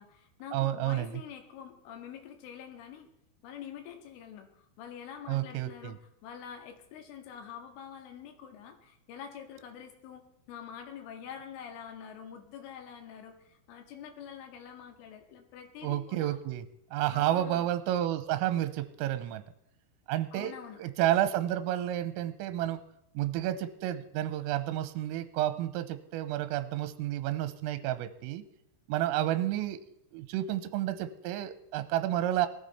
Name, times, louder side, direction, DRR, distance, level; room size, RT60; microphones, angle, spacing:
voice 1, 0.0-3.1 3.4-16.4 17.1-17.7 20.3-20.8, left 8 dB, 75° left, 4 dB, 4.2 m, -46 dB
voice 2, 0.5-1.2 5.3-5.9 15.8-16.7 16.9-19.4 20.1-20.5 20.8-22.8 23.1-28.4 28.9-29.8 30.1-32.5, right 13 dB, 85° right, 11 dB, 3.4 m, -30 dB
19.0 x 13.5 x 4.3 m, 0.79 s
omnidirectional pair, 6.0 m